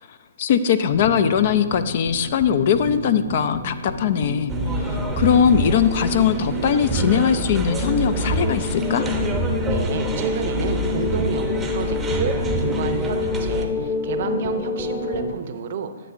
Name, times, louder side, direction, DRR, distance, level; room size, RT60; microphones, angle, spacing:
voice 1, 0.4-9.1, left 8 dB, 50° left, 12 dB, 0.4 m, -20 dB
sound 1, 0.9-15.3, left 3 dB, 25° left, 1.0 m, -29 dB
sound 2, 4.5-13.6, right 2 dB, 10° right, 0.7 m, -27 dB
voice 2, 9.7-15.9, right 6 dB, 50° right, 8 dB, 0.6 m, -30 dB
9.8 x 7.4 x 2.5 m, 1.5 s
hypercardioid pair, 145°, 0 cm